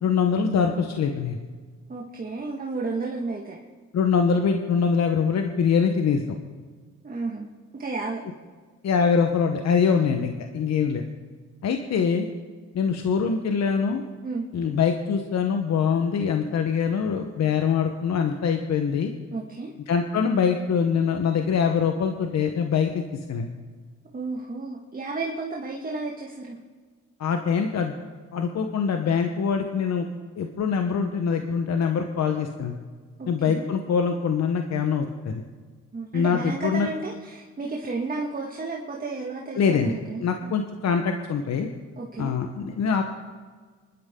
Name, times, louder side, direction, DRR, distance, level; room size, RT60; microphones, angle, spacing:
voice 1, 0.0-1.4 3.9-6.2 8.8-11.0 11.6-12.3 12.7-14.0 14.5-19.1 19.9-23.0 23.3-23.5 27.2-27.9 28.3-30.1 30.4-32.8 33.3-35.4 36.1-36.9 39.6-39.9 40.2-41.7 42.2-43.0, left 6 dB, 60° left, 5 dB, 1.2 m, -23 dB
voice 2, 1.9-3.6 7.0-7.5 7.7-8.2 14.2-14.5 19.3-19.7 24.1-26.5 33.2-33.6 35.9-40.2 42.0-42.3, right 3 dB, 30° right, -1 dB, 1.8 m, -32 dB
25.5 x 12.0 x 3.8 m, 1.5 s
cardioid pair, 90°, 30 cm